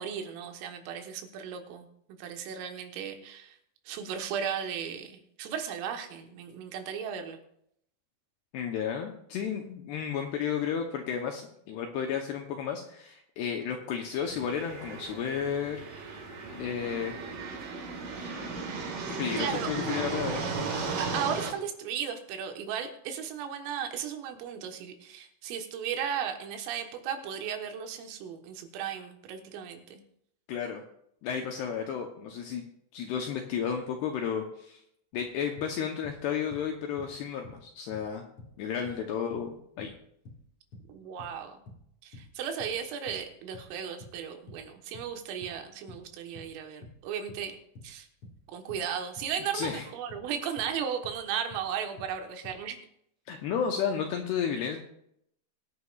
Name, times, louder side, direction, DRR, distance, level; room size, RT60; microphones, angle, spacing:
voice 1, 0.0-1.9 2.2-3.6 3.9-7.4 19.4-19.7 21.0-30.0 38.8-39.1 40.9-41.6 42.0-47.6 47.8-48.1 48.5-52.8, right 8 dB, 85° right, 5 dB, 3.9 m, -36 dB
voice 2, 8.5-15.8 16.5-17.1 19.2-20.5 30.5-30.8 31.2-32.6 32.9-34.8 35.1-38.2 38.6-39.9 49.5-49.9 53.3-54.8, left 7 dB, 80° left, 3 dB, 2.4 m, -32 dB
sound 1, 14.3-21.5, right 4 dB, 55° right, 2.6 m, -35 dB
sound 2, 35.1-36.2 36.5-37.7 37.9-43.7 44.0-51.2 51.5-52.6, left 2 dB, 65° left, 1.4 m, -49 dB
22.5 x 9.7 x 2.4 m, 0.73 s
omnidirectional pair, 5.7 m